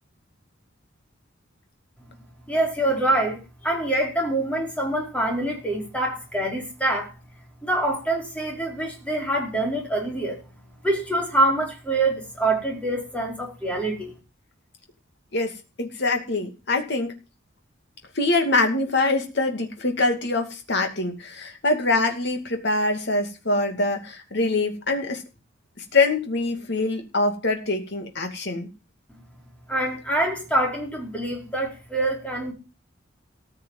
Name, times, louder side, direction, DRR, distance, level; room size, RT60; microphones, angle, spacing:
voice 1, 2.5-7.1 7.6-10.4 10.8-14.1 29.7-32.5, right 1 dB, 5° left, 0 dB, 4.8 m, -25 dB
voice 2, 15.8-17.1 18.1-25.2 25.9-28.7, left 2 dB, 60° left, 5 dB, 2.5 m, -24 dB
14.5 x 6.7 x 7.7 m, 0.31 s
head